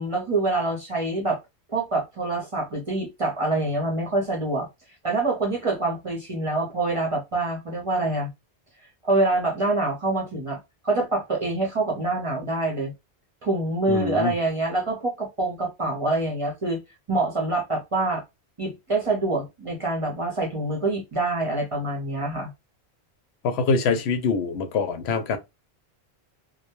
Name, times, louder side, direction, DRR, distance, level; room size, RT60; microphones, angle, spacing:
voice 1, 0.0-1.4 1.7-4.7 5.0-8.3 9.0-10.6 10.8-12.9 13.4-16.8 17.1-18.2 18.6-22.5, right 2 dB, 35° right, 0.6 m, -25 dB
voice 2, 13.9-14.3 23.4-25.4, left 5 dB, 85° left, 0.8 m, -24 dB
2.1 x 2.1 x 2.9 m
omnidirectional pair, 1.1 m